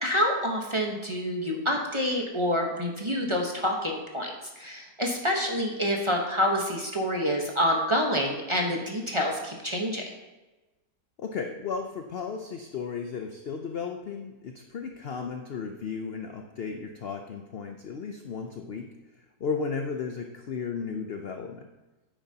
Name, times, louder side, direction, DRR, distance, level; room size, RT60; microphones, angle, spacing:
voice 1, 0.0-10.0, equal, 20° right, 0 dB, 0.9 m, -27 dB
voice 2, 11.2-18.9 19.4-21.7, left 5 dB, 65° left, 4 dB, 0.6 m, -34 dB
10.0 x 9.1 x 2.8 m, 1.1 s
omnidirectional pair, 1.8 m